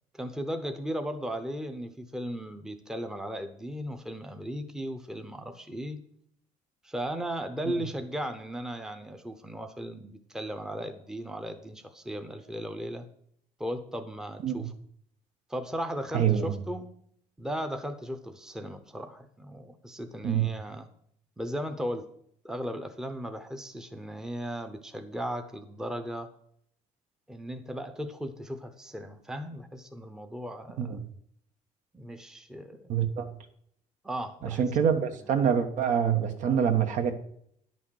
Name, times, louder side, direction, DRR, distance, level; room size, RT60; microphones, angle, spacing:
voice 1, 0.1-6.0 6.8-13.1 13.6-14.7 15.5-16.9 17.4-20.9 21.4-22.1 22.4-26.3 27.3-31.0 31.9-32.9 34.0-34.6, equal, 5° right, 0.8 m, -36 dB
voice 2, 16.1-16.6 20.2-20.5 30.8-31.0 32.9-33.3 34.4-37.3, right 8 dB, 70° right, 1.3 m, -26 dB
11.0 x 6.2 x 6.3 m
cardioid pair, 165°, 13 cm